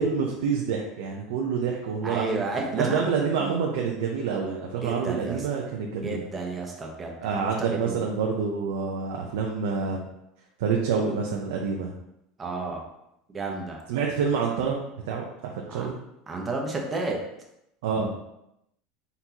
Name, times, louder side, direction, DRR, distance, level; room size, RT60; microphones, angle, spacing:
voice 1, 0.0-2.4 2.7-6.2 7.2-10.1 10.6-11.9 13.9-14.8 15.1-15.9 17.8-18.1, right 5 dB, 85° right, -1 dB, 0.7 m, -27 dB
voice 2, 2.0-3.1 3.4-3.6 4.8-5.5 6.0-7.5 7.8-8.0 12.4-12.8 13.3-13.8 15.7-15.9 16.3-17.2, right 3 dB, 20° right, 0 dB, 1.0 m, -31 dB
4.4 x 4.0 x 2.9 m, 0.83 s
supercardioid pair, 130°, 0 cm